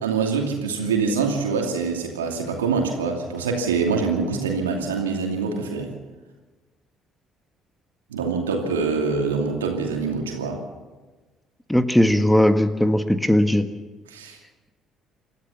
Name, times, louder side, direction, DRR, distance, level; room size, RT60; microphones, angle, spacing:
voice 1, 0.0-5.9 8.1-10.6 14.1-14.4, right 5 dB, 80° right, 2 dB, 2.7 m, -25 dB
voice 2, 11.7-13.6, left 1 dB, 5° left, 9 dB, 1.6 m, -18 dB
27.5 x 13.5 x 7.2 m, 1.3 s
figure-of-eight pair, 50°, 0 cm